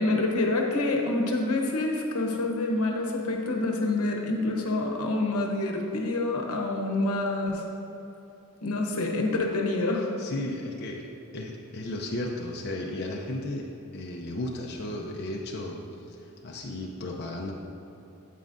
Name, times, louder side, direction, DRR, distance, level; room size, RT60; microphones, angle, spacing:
voice 1, 0.0-7.6 8.6-10.1, left 2 dB, 85° left, 1 dB, 1.0 m, -27 dB
voice 2, 10.2-13.7 13.9-15.8 16.1-17.5, left 1 dB, 50° left, -1 dB, 0.5 m, -34 dB
8.8 x 8.4 x 2.6 m, 3.0 s
head